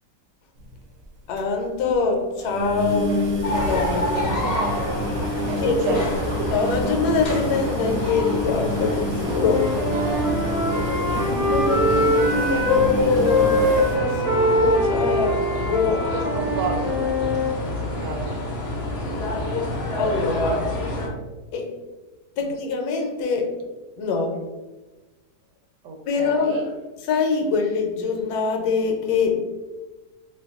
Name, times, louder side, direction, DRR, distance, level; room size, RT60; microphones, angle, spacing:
sound 1, 0.6-0.8 1.0-1.1 1.4-1.5 1.8-1.9 2.4-14.0, equal, 65° right, 1.1 m, -29 dB
voice 1, 1.3-4.4 5.6-6.0 6.5-9.8 11.0-16.1 20.0-20.7 21.5-21.7 22.4-23.6 24.0-24.4 26.1-26.6 27.1-29.5, left 4 dB, 75° left, 2 dB, 1.1 m, -24 dB
sound 2, 3.4-21.1, left 1 dB, 60° left, 0.7 m, -28 dB
voice 2, 4.3-5.1 5.4-6.4 9.9-10.3 15.9-18.4 22.4-22.5 25.8-26.7, right 3 dB, 90° right, 4 dB, 1.2 m, -32 dB
Wind instrument woodwind instrument, 9.3-12.9 13.2-17.5, left 1 dB, 5° right, 0.5 m, -23 dB
2.8 x 2.2 x 3.5 m, 1.2 s
omnidirectional pair, 1.8 m